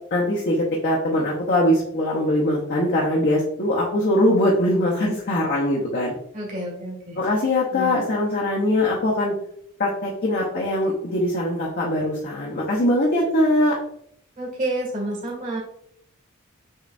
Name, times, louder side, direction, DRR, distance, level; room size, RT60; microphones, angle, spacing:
voice 1, 0.1-6.1 7.2-9.3 9.8-13.8, left 1 dB, 50° left, -4 dB, 0.9 m, -22 dB
voice 2, 6.3-7.2 7.7-8.0 14.4-15.6, right 1 dB, 40° right, -3 dB, 1.6 m, -29 dB
6.5 x 3.1 x 2.5 m, 0.71 s
head